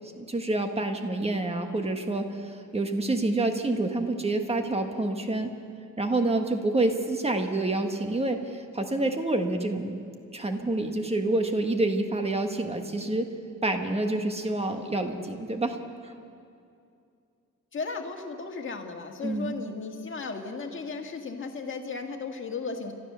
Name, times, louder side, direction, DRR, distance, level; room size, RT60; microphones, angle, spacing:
voice 1, 0.2-5.5 6.0-10.0 10.3-13.3 13.6-16.1 19.2-19.5, right 2 dB, 20° right, 5 dB, 1.4 m, -28 dB
voice 2, 17.7-22.9, left 4 dB, 40° left, 3 dB, 1.8 m, -35 dB
30.0 x 13.0 x 6.8 m, 2.4 s
wide cardioid pair, 175°, 31 cm